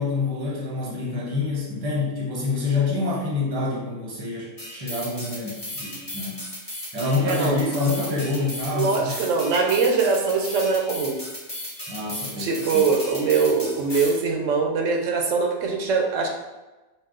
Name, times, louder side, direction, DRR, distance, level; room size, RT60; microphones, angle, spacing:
voice 1, 0.0-6.4 6.9-9.1 11.9-12.8, left 3 dB, 20° right, -4 dB, 0.8 m, -27 dB
sound 1, 4.6-14.2, left 1 dB, 15° left, 0.8 m, -36 dB
voice 2, 7.2-7.6 8.7-11.2 12.4-16.3, right 4 dB, 80° right, 1 dB, 0.9 m, -22 dB
4.0 x 2.2 x 3.7 m, 1.1 s
omnidirectional pair, 1.3 m